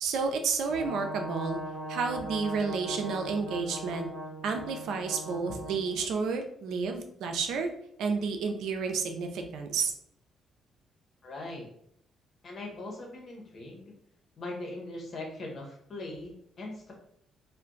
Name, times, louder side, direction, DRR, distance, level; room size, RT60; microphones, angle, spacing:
voice 1, 0.0-1.6 1.9-4.1 4.4-7.7 8.0-9.9, right 5 dB, 80° right, 5 dB, 0.5 m, -31 dB
Brass instrument, 0.7-5.9, right 1 dB, 20° right, 0.9 m, -39 dB
voice 2, 11.2-11.7 12.4-13.9 14.4-16.9, left 2 dB, 45° left, 0 dB, 1.0 m, -40 dB
2.5 x 2.2 x 3.8 m, 0.70 s
cardioid pair, 90°, 0 cm